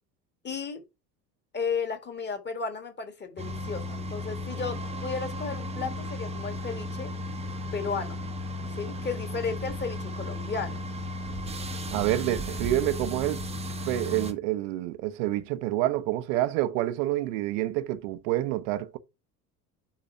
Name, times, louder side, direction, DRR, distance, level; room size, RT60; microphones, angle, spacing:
voice 1, 0.4-0.8 1.5-7.1 7.7-8.3 8.7-10.9, left 5 dB, 20° left, 1.8 m, -34 dB
sound 1, 3.4-14.3, left 1 dB, 15° right, 0.9 m, -35 dB
voice 2, 11.9-13.4 13.9-19.0, right 15 dB, 50° right, 0.9 m, -28 dB
5.8 x 4.0 x 5.8 m
figure-of-eight pair, 70°, 49 cm